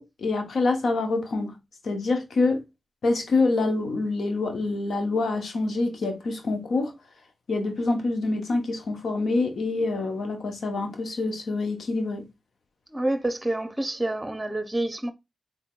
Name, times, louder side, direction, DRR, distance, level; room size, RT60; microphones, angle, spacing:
voice 1, 0.0-1.5 1.8-2.6 3.0-6.9 7.5-12.3, left 3 dB, 75° left, 1.0 m, -26 dB
voice 2, 12.9-15.1, right 1 dB, 20° right, 0.7 m, -28 dB
3.6 x 3.4 x 2.4 m
supercardioid pair, 40°, 0 cm